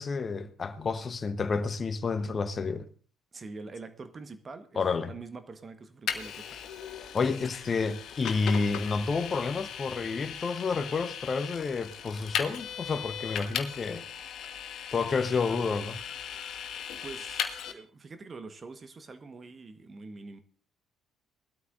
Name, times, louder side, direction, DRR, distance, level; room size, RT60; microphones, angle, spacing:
voice 1, 0.0-2.9 4.8-5.1 7.1-14.0 14.9-16.0, left 4 dB, 35° left, 1.0 m, -30 dB
voice 2, 3.3-6.6 17.0-20.4, right 3 dB, 35° right, 1.3 m, -45 dB
Vehicle, 6.1-17.7, left 8 dB, 55° left, 1.3 m, -37 dB
20.0 x 13.0 x 2.6 m
figure-of-eight pair, 50°, 0 cm